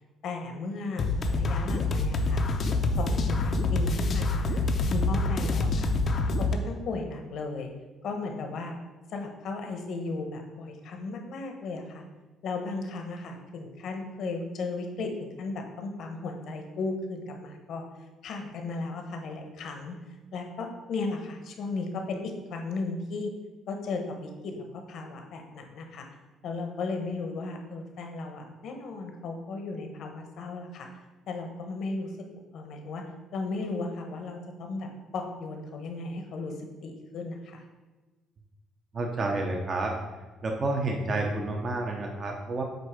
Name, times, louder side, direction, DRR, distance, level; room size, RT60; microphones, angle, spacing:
voice 1, 0.2-2.4 3.0-4.6 4.9-5.9 6.4-7.7 8.0-8.7 9.1-12.0 12.4-17.8 18.2-20.0 20.3-23.3 23.7-26.0 26.4-30.9 31.3-32.1 32.5-33.0 33.3-36.5 36.8-37.6, left 3 dB, 65° left, 4 dB, 1.0 m, -35 dB
sound 1, 1.0-6.5, left 2 dB, 45° left, 0.6 m, -26 dB
voice 2, 38.9-39.9 40.4-42.6, right 2 dB, 40° right, 1 dB, 0.7 m, -29 dB
7.7 x 2.7 x 4.9 m, 1.2 s
cardioid pair, 115°, 0 cm